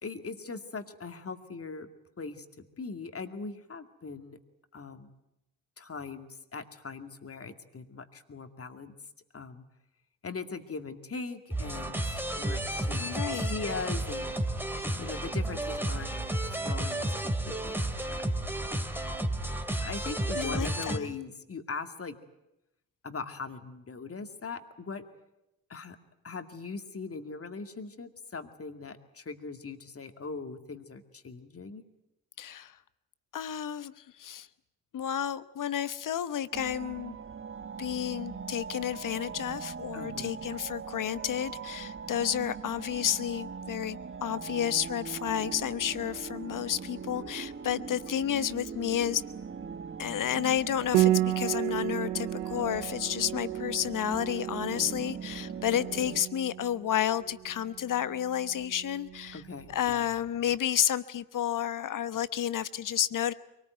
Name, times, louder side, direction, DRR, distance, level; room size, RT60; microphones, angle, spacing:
voice 1, 0.0-1.9 2.2-4.4 4.7-5.1 5.8-8.9 9.3-9.6 10.2-14.3 15.0-16.2 16.6-18.2 18.7-19.0 19.8-22.1 23.0-25.0 25.7-26.0 26.2-31.8 39.9-40.3 54.7-55.0 59.3-60.1, left 4 dB, 35° left, 7 dB, 2.3 m, -40 dB
sound 1, 11.5-21.0, right 1 dB, 5° right, 2.5 m, -32 dB
voice 2, 13.0-13.6 20.3-21.1 32.4-32.7 33.3-33.9 34.2-34.5 34.9-37.2 37.8-49.2 50.0-59.4 59.7-63.3, left 10 dB, 50° left, 16 dB, 1.1 m, -31 dB
sound 2, 36.5-56.2, right 6 dB, 30° right, 1.3 m, -41 dB
Piano, 50.9-60.3, right 15 dB, 90° right, 0.9 m, -33 dB
23.5 x 19.0 x 9.4 m, 0.88 s
hypercardioid pair, 55°, 40 cm